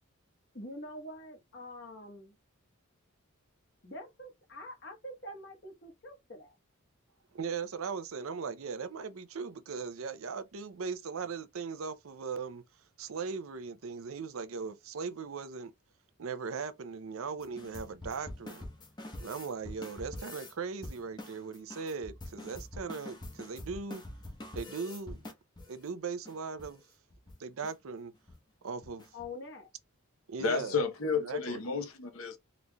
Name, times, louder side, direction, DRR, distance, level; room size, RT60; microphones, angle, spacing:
voice 1, 0.5-2.3 3.8-6.5 29.1-29.7, left 1 dB, 50° left, 1.3 m, -45 dB
voice 2, 7.3-12.6 13.0-15.7 16.2-18.7 19.2-24.0 24.6-25.2 25.7-26.8 27.4-28.1 28.6-29.1 30.3-30.8 31.2-31.6, right 5 dB, 70° right, 0.5 m, -39 dB
sound 1, 17.4-20.5 20.8-25.8 26.3-26.4 26.6-26.8 27.1-27.4 27.6-27.7 28.1-28.4 28.8-29.3, left 1 dB, 20° left, 0.8 m, -45 dB
voice 3, 30.4-32.4, left 5 dB, 70° left, 0.8 m, -32 dB
3.9 x 3.1 x 2.2 m
head